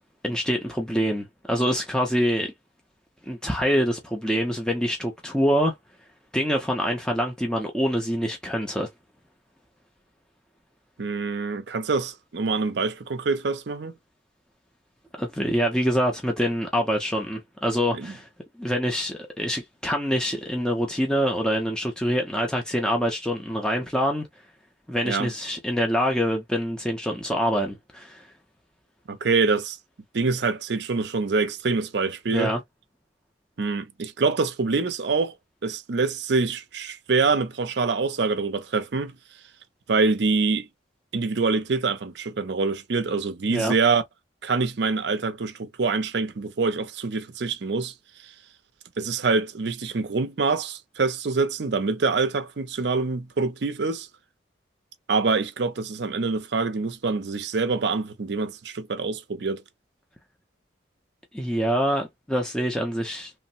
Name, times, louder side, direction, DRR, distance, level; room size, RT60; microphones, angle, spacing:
voice 1, 0.2-2.5 3.3-5.7 6.3-8.9 15.2-18.3 18.6-24.3 24.9-28.3 32.3-32.6 43.5-43.7 61.3-63.3, equal, 5° left, 0.5 m, -25 dB
voice 2, 11.0-13.9 18.0-18.1 25.0-25.3 29.1-29.8 30.1-32.5 33.6-35.3 35.6-39.2 39.9-40.7 41.1-44.0 44.4-47.9 48.2-48.3 49.0-54.1 55.1-59.6, right 4 dB, 60° right, 0.5 m, -25 dB
3.1 x 2.0 x 2.6 m
head